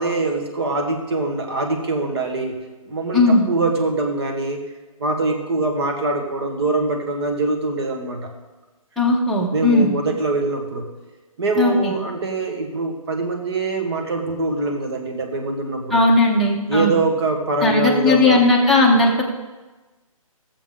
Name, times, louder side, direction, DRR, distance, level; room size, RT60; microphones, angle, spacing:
voice 1, 0.0-2.5 2.9-4.6 5.0-8.3 9.5-10.9 11.4-16.0 16.7-18.4, right 3 dB, 45° right, 4 dB, 1.6 m, -23 dB
voice 2, 3.1-3.4 9.0-9.9 11.6-11.9 15.9-16.9 17.6-19.2, left 2 dB, ahead, -5 dB, 0.9 m, -17 dB
14.0 x 7.4 x 3.7 m, 1.2 s
hypercardioid pair, 155°, 18 cm